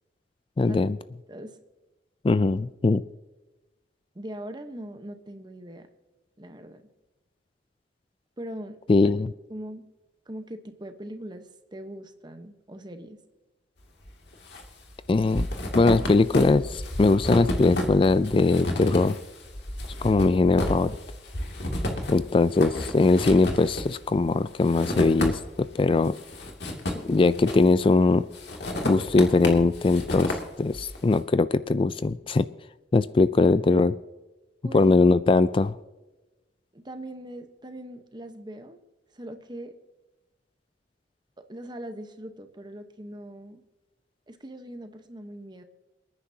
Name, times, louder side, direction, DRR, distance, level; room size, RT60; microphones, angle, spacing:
voice 1, 0.6-1.0 2.2-3.0 8.9-9.3 15.1-15.5 15.7-19.2 20.0-20.9 22.1-26.1 27.0-28.2 28.8-32.5 32.9-33.9 34.7-35.7, left 3 dB, 30° left, 15 dB, 0.3 m, -21 dB
voice 2, 4.1-5.9 6.4-6.9 8.4-9.1 9.5-9.9 10.3-13.2 34.6-35.0 36.7-38.8 39.1-39.7 41.5-43.6 44.3-45.6, right 1 dB, 25° right, 7 dB, 1.1 m, -40 dB
sound 1, 14.1-14.7 14.9-25.7 26.1-27.9 28.3-31.0, left 1 dB, 70° left, 2.5 m, -31 dB
28.5 x 9.8 x 2.8 m, 1.1 s
head